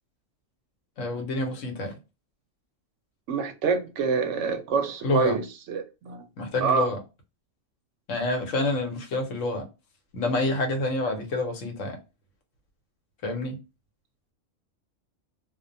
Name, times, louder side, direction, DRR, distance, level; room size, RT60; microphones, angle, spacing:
voice 1, 1.0-1.9 5.0-5.4 6.4-7.0 8.1-9.7 10.1-12.0 13.2-13.6, left 2 dB, 75° left, 1.1 m, -28 dB
voice 2, 3.3-6.2 6.6-6.9, right 5 dB, 70° right, 0.9 m, -26 dB
2.4 x 2.1 x 2.5 m
omnidirectional pair, 1.3 m